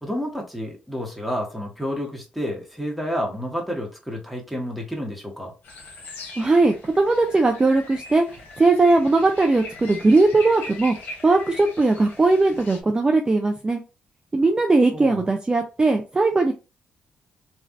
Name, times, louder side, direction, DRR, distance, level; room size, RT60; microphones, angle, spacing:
voice 1, 0.0-5.5 14.9-15.2, equal, ahead, 1.4 m, -30 dB
sound 1, 5.6-12.8, left 3 dB, 75° left, 1.0 m, -40 dB
voice 2, 6.4-8.2 8.6-10.9 11.2-13.8 14.3-16.5, right 3 dB, 25° right, 0.5 m, -19 dB
3.1 x 2.5 x 2.5 m
cardioid pair, 75°, 3 cm